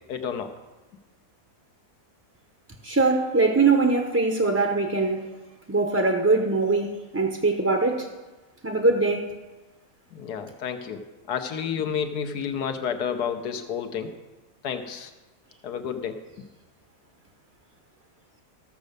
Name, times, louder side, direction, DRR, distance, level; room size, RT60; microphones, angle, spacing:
voice 1, 0.1-0.5 10.1-11.0 11.3-14.1 14.6-15.1 15.6-16.5, left 7 dB, 85° left, 7 dB, 1.4 m, -30 dB
voice 2, 2.8-5.3 5.7-8.1 8.6-9.3, right 3 dB, 15° right, 3 dB, 0.5 m, -22 dB
14.5 x 6.4 x 6.6 m, 1.2 s
omnidirectional pair, 1.6 m